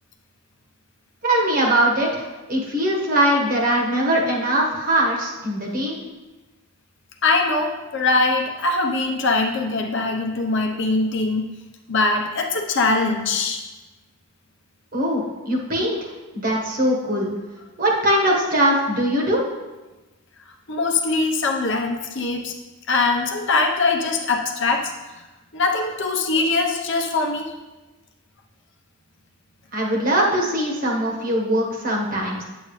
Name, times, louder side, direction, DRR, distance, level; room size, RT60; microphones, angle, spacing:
voice 1, 1.2-5.9 14.9-16.0 16.3-17.3 17.8-19.4 29.7-32.4, right 1 dB, 40° right, -1 dB, 1.4 m, -21 dB
voice 2, 7.2-11.5 11.9-13.6 20.7-22.5 22.9-24.9 25.5-27.5, left 3 dB, 55° left, 2 dB, 0.9 m, -22 dB
9.0 x 8.1 x 3.2 m, 1.1 s
head